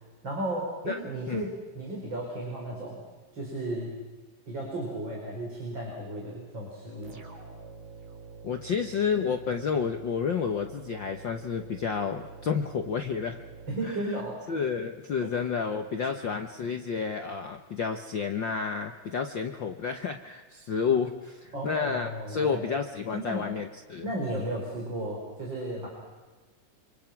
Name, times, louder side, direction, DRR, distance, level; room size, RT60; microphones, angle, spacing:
voice 1, 0.2-3.0 3.3-3.9 4.5-7.2 13.7-14.5 15.2-15.3 21.5-22.6 23.1-23.5 24.0-25.9, right 1 dB, 35° right, -2 dB, 5.6 m, -34 dB
sound 1, 7.0-14.5, right 4 dB, 85° right, 5.7 m, -47 dB
voice 2, 8.4-13.4 13.8-14.2 14.5-24.1, left 6 dB, 60° left, 5 dB, 1.2 m, -30 dB
28.0 x 26.0 x 6.1 m, 1.3 s
omnidirectional pair, 3.7 m